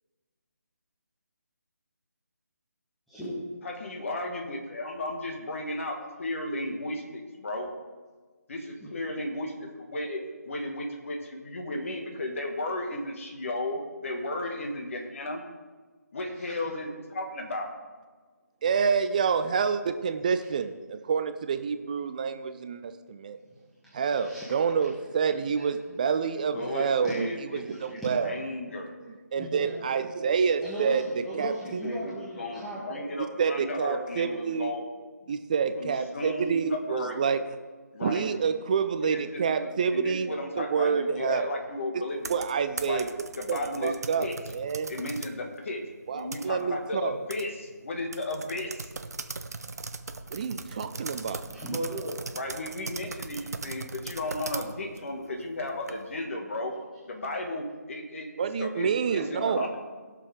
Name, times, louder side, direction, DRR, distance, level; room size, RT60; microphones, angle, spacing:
voice 1, 3.1-3.4 8.8-8.9 16.5-16.6 23.5-23.6 23.8-24.5 25.5-25.6 26.5-26.6 27.0-27.1 27.5-28.1 29.4-29.8 30.6-33.0 51.5-52.2 59.3-59.7, right 1 dB, ahead, -10 dB, 1.5 m, -36 dB
voice 2, 3.6-7.7 8.5-15.4 16.1-17.7 26.5-28.9 31.8-34.8 35.2-35.4 35.8-37.2 37.9-38.3 39.0-42.3 42.8-43.1 43.4-43.9 44.2-44.3 44.9-45.8 46.1-48.9 52.3-56.7 57.1-59.8, left 2 dB, 50° left, 3 dB, 2.0 m, -34 dB
voice 3, 18.6-23.4 23.9-28.4 29.3-31.0 31.3-31.8 33.4-34.7 35.3-37.4 38.0-40.3 40.6-41.4 42.3-43.1 43.5-44.9 46.1-47.2 50.3-51.4 58.4-59.6, right 6 dB, 25° right, 10 dB, 0.5 m, -28 dB
sound 1, 42.1-45.4 45.8-46.9 47.3-47.4 47.7-47.8 48.1-56.2, right 3 dB, 65° right, 0.8 m, -39 dB
19.5 x 6.7 x 3.7 m, 1.4 s
figure-of-eight pair, 155°, 9 cm